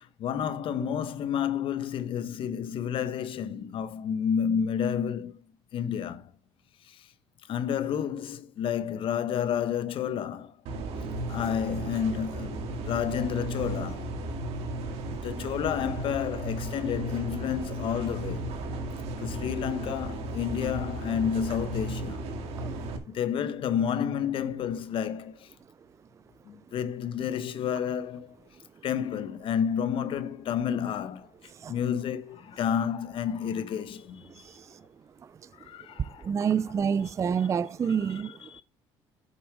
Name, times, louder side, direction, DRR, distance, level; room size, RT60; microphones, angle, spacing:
voice 1, 0.0-5.4 5.7-6.3 6.9-7.1 7.5-10.5 11.3-14.1 15.1-18.5 19.2-22.3 23.1-25.5 26.5-28.4 28.8-31.3 31.7-34.4 35.6-37.5 37.8-38.6, left 8 dB, 55° left, 1.1 m, -30 dB
sound 1, 10.7-23.0, right 1 dB, 70° right, 2.3 m, -35 dB
voice 2, 36.2-38.3, right 7 dB, 30° right, 0.4 m, -27 dB
8.2 x 7.1 x 4.8 m
cardioid pair, 100°, 11 cm